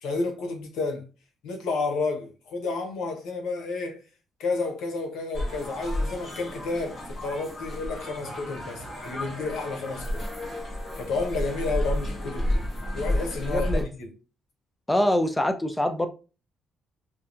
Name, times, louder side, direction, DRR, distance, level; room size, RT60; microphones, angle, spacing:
voice 1, 0.0-1.0 1.4-4.0 4.4-10.2 11.0-14.1, left 3 dB, 85° left, 0.7 m, -31 dB
sound 1, 5.3-13.8, left 1 dB, 40° left, 1.1 m, -31 dB
voice 2, 13.5-13.8 14.9-16.1, left 1 dB, 10° left, 0.4 m, -24 dB
2.7 x 2.1 x 2.5 m
cardioid pair, 90°, 0 cm